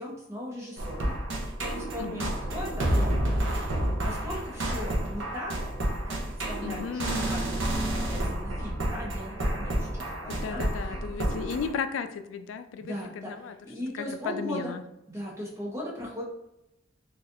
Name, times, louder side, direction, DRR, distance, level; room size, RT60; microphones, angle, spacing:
voice 1, 0.0-3.2 4.0-5.7 6.1-10.6 12.8-13.3 13.6-14.7 15.1-16.2, equal, 15° right, -4 dB, 0.9 m, -38 dB
sound 1, 0.8-11.7, right 1 dB, 85° right, 0.7 m, -30 dB
voice 2, 2.0-2.3 6.6-7.3 10.3-13.5 13.9-14.8, left 6 dB, 90° left, 10 dB, 0.3 m, -35 dB
3.9 x 2.4 x 2.6 m, 0.87 s
head